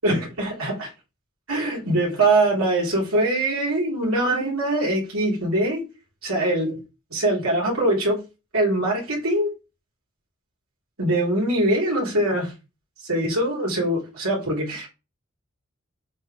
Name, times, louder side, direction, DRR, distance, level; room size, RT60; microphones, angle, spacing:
voice 1, 0.0-0.9 1.5-5.8 6.2-6.8 7.1-8.2 8.5-9.5 11.0-12.5 13.0-14.9, right 1 dB, 85° right, 3.9 m, -23 dB
7.6 x 5.5 x 3.4 m
head